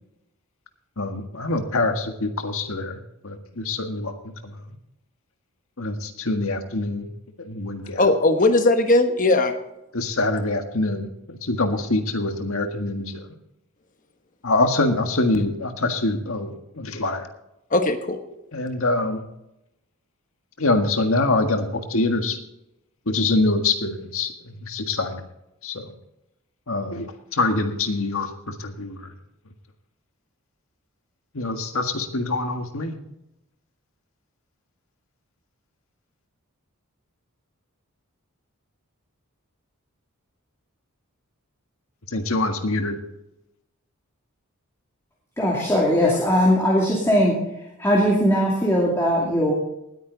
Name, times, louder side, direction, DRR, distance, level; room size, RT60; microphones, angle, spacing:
voice 1, 1.0-4.8 5.8-7.1 7.4-8.0 9.9-13.3 14.4-17.3 18.5-19.2 20.6-22.4 23.1-25.2 25.6-25.9 26.7-27.1 27.3-29.1 31.3-33.0 42.1-43.0, left 2 dB, 70° left, 6 dB, 1.7 m, -25 dB
voice 2, 8.0-9.6 17.7-18.2, left 2 dB, 35° left, 6 dB, 1.2 m, -18 dB
voice 3, 45.4-47.3 47.8-49.5, equal, 10° left, -4 dB, 2.6 m, -19 dB
19.5 x 9.4 x 4.0 m, 0.87 s
head